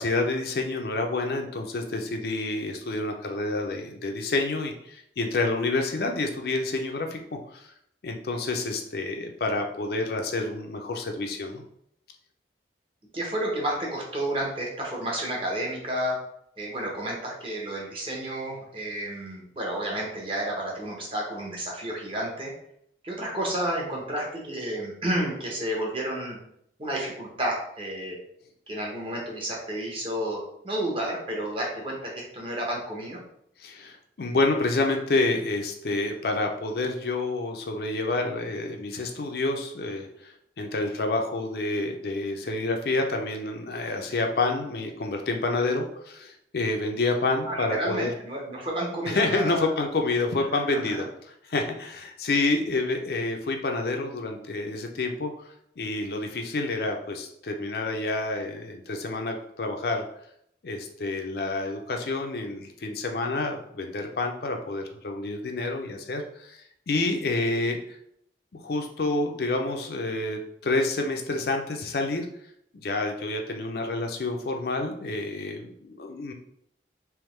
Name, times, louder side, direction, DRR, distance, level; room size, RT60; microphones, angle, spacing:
voice 1, 0.0-7.2 7.5-7.7 8.0-11.6 33.6-48.1 49.1-51.1 51.5-55.3 55.8-60.0 60.6-66.6 66.9-67.8 68.5-72.3 72.8-76.3, left 2 dB, 60° left, 3 dB, 0.5 m, -28 dB
voice 2, 13.1-16.2 16.6-22.5 23.0-26.4 26.8-28.2 28.7-33.2 47.5-49.7 50.7-51.0, right 1 dB, 30° right, -2 dB, 1.0 m, -31 dB
3.5 x 3.0 x 3.2 m, 0.71 s
head